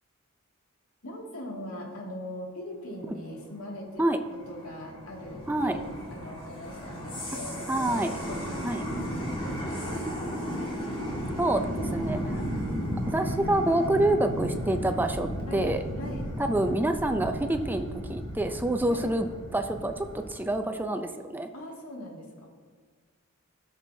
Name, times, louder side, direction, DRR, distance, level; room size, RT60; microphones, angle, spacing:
voice 1, 1.0-10.0 15.4-16.2 18.9-19.1 21.5-22.5, left 1 dB, 90° left, -2 dB, 2.2 m, -41 dB
sound 1, 4.0-20.5, equal, 25° left, 1.8 m, -34 dB
voice 2, 7.7-8.1 8.6-8.8 11.4-12.3 13.1-15.8 16.5-21.5, right 1 dB, 10° right, 7 dB, 0.4 m, -27 dB
17.0 x 6.2 x 2.7 m, 1.5 s
head